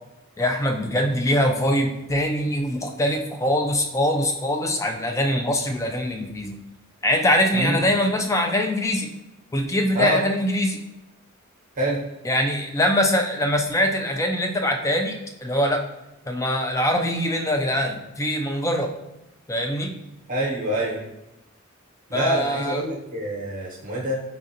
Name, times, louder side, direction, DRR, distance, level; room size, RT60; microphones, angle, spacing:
voice 1, 0.4-6.6 7.0-9.1 9.5-10.8 12.2-15.9 16.3-18.9 19.5-19.9 22.1-22.9, left 1 dB, 15° left, 3 dB, 0.4 m, -23 dB
voice 2, 7.5-7.8 9.9-10.2 11.8-12.0 20.3-21.0 22.1-24.2, right 1 dB, 40° right, -4 dB, 0.9 m, -25 dB
4.2 x 3.7 x 2.7 m, 0.92 s
head